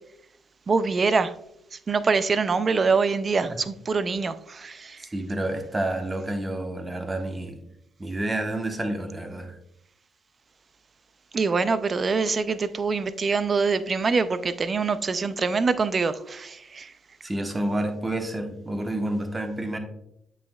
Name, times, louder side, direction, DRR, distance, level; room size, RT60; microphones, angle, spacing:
voice 1, 0.7-1.3 1.9-5.0 11.3-16.9, right 4 dB, 40° right, 14 dB, 0.4 m, -24 dB
voice 2, 5.1-7.6 8.0-9.6 17.2-19.8, right 1 dB, 20° right, 5 dB, 1.0 m, -29 dB
8.4 x 5.5 x 2.3 m, 0.77 s
cardioid pair, 90°, 0 cm